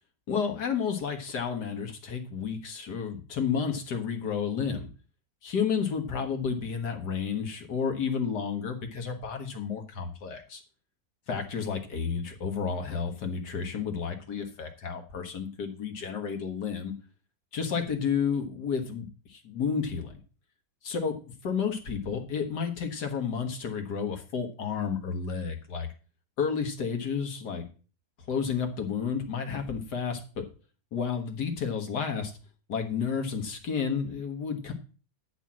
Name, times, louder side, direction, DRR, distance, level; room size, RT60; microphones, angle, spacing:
voice 1, 0.3-4.9 5.4-10.6 11.3-16.9 17.5-20.2 20.8-21.1 21.4-25.9 26.4-27.6 28.3-30.4 30.9-32.3 32.7-34.7, left 6 dB, 85° left, 5 dB, 2.2 m, -31 dB
10.0 x 4.4 x 7.4 m, 0.37 s
omnidirectional pair, 1.7 m